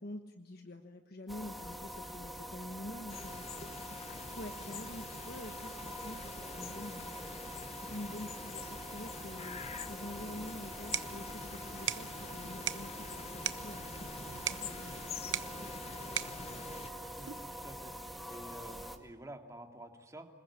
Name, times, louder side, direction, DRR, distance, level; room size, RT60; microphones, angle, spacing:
voice 1, 0.0-3.4 4.3-7.1 7.9-13.1 13.3-13.9 14.5-15.6, left 1 dB, 55° left, 5 dB, 1.3 m, -47 dB
sound 1, 1.3-19.0, equal, ahead, 2.0 m, -45 dB
sound 2, 3.1-16.9, left 5 dB, 35° left, 0.9 m, -47 dB
sound 3, 10.6-17.6, right 10 dB, 85° right, 0.9 m, -42 dB
voice 2, 17.1-17.9 18.3-20.3, right 1 dB, 15° right, 4 dB, 2.5 m, -50 dB
26.5 x 21.0 x 8.7 m, 1.2 s
head